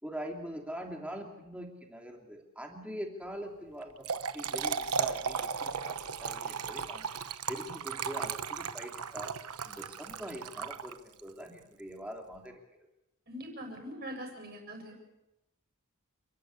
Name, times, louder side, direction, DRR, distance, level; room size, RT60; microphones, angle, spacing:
voice 1, 0.0-7.1 7.5-9.3 9.6-12.6, equal, 5° right, 1 dB, 3.0 m, -43 dB
Trickle dribble / Fill (with liquid), 3.8-11.3, right 6 dB, 90° right, 1.0 m, -36 dB
voice 2, 13.3-15.0, equal, 45° right, 1 dB, 7.3 m, -42 dB
30.0 x 11.5 x 8.4 m, 0.93 s
head